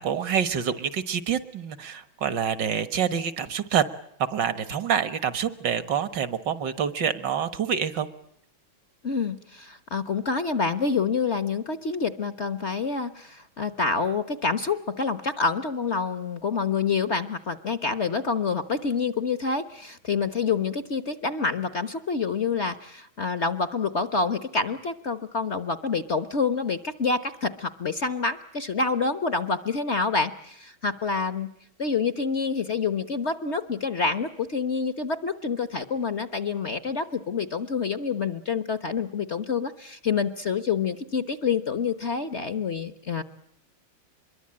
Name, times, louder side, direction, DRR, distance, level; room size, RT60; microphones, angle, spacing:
voice 1, 0.0-3.8 4.3-8.1, right 8 dB, 65° right, 13 dB, 2.0 m, -27 dB
voice 2, 9.0-31.5 31.8-43.2, left 5 dB, 40° left, 12 dB, 1.3 m, -27 dB
25.5 x 22.5 x 8.8 m, 0.71 s
omnidirectional pair, 2.1 m